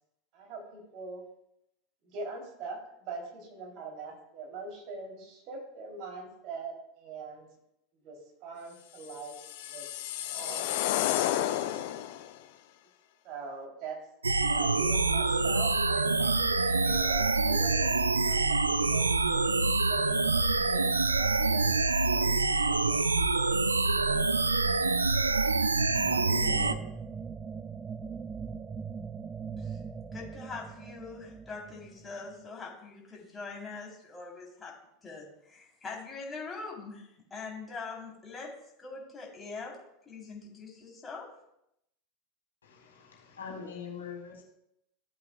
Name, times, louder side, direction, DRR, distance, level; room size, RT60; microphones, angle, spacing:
voice 1, 0.3-1.2 2.0-7.5 8.0-9.4 9.6-9.9 10.3-10.9 11.2-11.8 13.2-14.0 14.5-21.8 22.1-23.1 23.9-24.5 26.0-26.8, right 3 dB, 50° right, 0 dB, 3.5 m, -43 dB
sound 1, 9.1-12.3, left 13 dB, 60° left, 0.6 m, -31 dB
sound 2, 14.2-26.7, right 3 dB, 90° right, 0.4 m, -26 dB
sound 3, 25.7-32.5, right 6 dB, 25° right, 0.6 m, -41 dB
voice 2, 30.1-34.7 35.0-37.0 37.3-38.5 38.8-41.3, left 4 dB, 20° left, -2 dB, 3.9 m, -43 dB
voice 3, 42.6-44.5, left 6 dB, 80° left, -2 dB, 3.0 m, -43 dB
15.5 x 8.1 x 2.4 m, 0.80 s
figure-of-eight pair, 80°, 0 cm